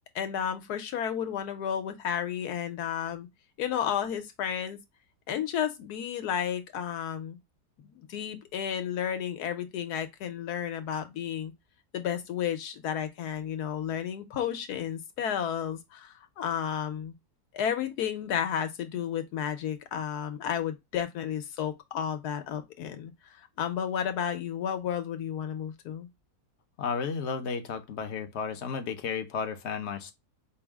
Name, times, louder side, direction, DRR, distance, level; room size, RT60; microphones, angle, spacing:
voice 1, 0.1-3.3 3.6-4.8 5.3-7.4 7.8-11.5 11.9-17.1 17.5-26.1, left 9 dB, 80° left, 1.3 m, -32 dB
voice 2, 26.8-30.1, left 5 dB, 55° left, 0.8 m, -33 dB
5.4 x 2.1 x 3.4 m
omnidirectional pair, 1.6 m